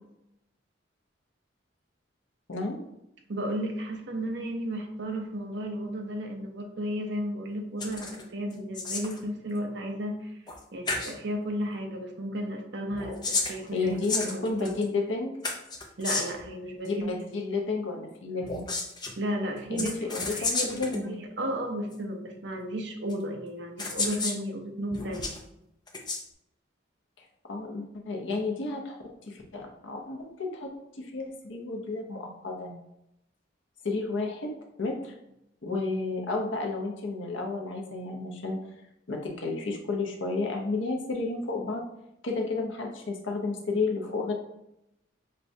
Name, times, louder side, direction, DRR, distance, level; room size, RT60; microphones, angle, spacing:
voice 1, 2.5-2.8 13.4-15.3 16.8-18.7 19.7-21.1 27.2-32.8 33.8-34.5 34.8-35.1 35.6-38.6 39.1-41.9 42.2-44.3, left 3 dB, 70° left, 1 dB, 0.7 m, -32 dB
voice 2, 3.3-10.3 10.7-14.7 16.0-17.1 19.2-25.3, equal, 55° right, 2 dB, 0.6 m, -34 dB
sound 1, 7.8-8.2 8.5-9.2 10.5-10.6 10.9-11.1 12.9-14.8 15.4-16.5 18.4-19.1 19.8-21.0 21.9-22.0 23.1-23.2 23.8-24.4 24.9-25.4 25.9-26.2, left 3 dB, 20° left, 0.4 m, -32 dB
6.4 x 2.2 x 2.6 m, 0.84 s
head